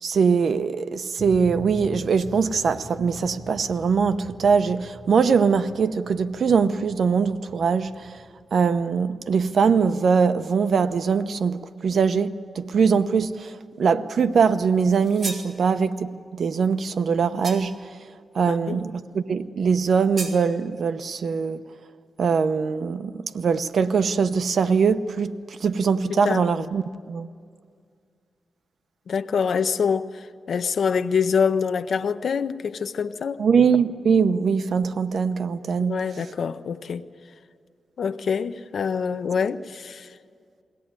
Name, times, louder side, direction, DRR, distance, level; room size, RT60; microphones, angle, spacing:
voice 1, 0.0-8.1 8.5-17.8 18.3-21.6 22.2-27.3 33.4-36.0, right 5 dB, 65° right, 0.8 m, -22 dB
sound 1, 1.2-9.7, left 1 dB, 50° left, 1.6 m, -43 dB
sound 2, 14.9-15.5 17.4-17.9 20.2-20.4, right 3 dB, 50° right, 2.4 m, -34 dB
voice 2, 18.5-18.8 26.1-26.5 29.1-33.4 35.8-37.0 38.0-40.1, left 6 dB, 70° left, 0.7 m, -25 dB
22.0 x 17.0 x 9.6 m
wide cardioid pair, 115°, 0 cm